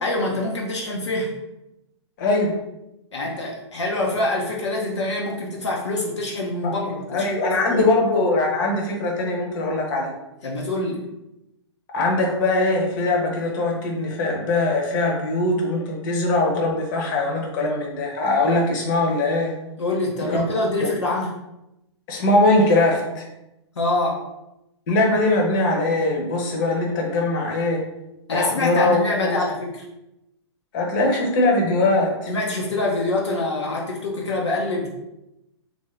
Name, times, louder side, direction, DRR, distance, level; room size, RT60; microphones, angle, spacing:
voice 1, 0.0-1.3 3.1-7.3 7.7-7.8 10.4-11.1 19.8-21.3 23.8-24.3 28.3-29.8 32.3-34.9, left 2 dB, 75° left, -2 dB, 0.7 m, -25 dB
voice 2, 2.2-2.6 7.1-10.1 11.9-19.5 20.2-20.4 22.1-23.3 24.9-27.8 28.3-29.4 30.7-32.3, left 2 dB, 45° left, 0 dB, 0.9 m, -21 dB
3.5 x 2.6 x 3.3 m, 0.90 s
figure-of-eight pair, 110°, 15 cm